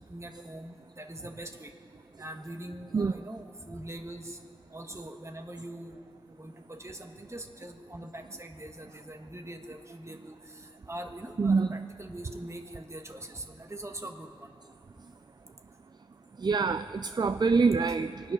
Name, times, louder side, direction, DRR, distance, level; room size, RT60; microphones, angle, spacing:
voice 1, 0.1-1.7 2.2-4.4 4.7-6.0 6.4-14.5 17.8-18.0, right 1 dB, 30° right, 5 dB, 1.3 m, -43 dB
voice 2, 11.4-11.8 16.4-18.3, right 4 dB, 50° right, 11 dB, 0.3 m, -25 dB
25.5 x 9.3 x 6.1 m, 2.4 s
wide cardioid pair, 70°, 9 cm